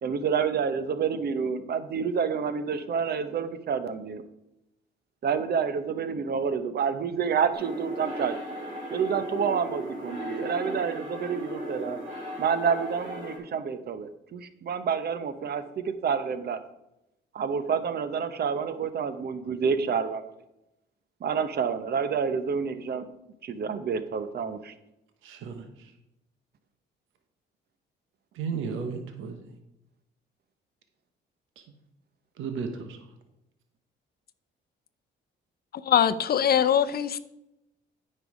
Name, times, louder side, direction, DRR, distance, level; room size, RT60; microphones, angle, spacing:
voice 1, 0.0-4.2 5.2-8.4 8.9-12.0 12.4-16.6 17.3-20.2 21.2-23.1 23.4-24.7, right 6 dB, 55° right, 0.9 m, -28 dB
sound 1, 7.5-13.4, right 1 dB, 70° right, 3.2 m, -36 dB
voice 2, 25.2-25.9 28.3-29.4 32.4-33.0, right 5 dB, 85° right, 1.1 m, -34 dB
voice 3, 35.8-37.2, left 9 dB, 50° left, 0.6 m, -22 dB
9.3 x 5.5 x 4.8 m
cardioid pair, 90°, 20 cm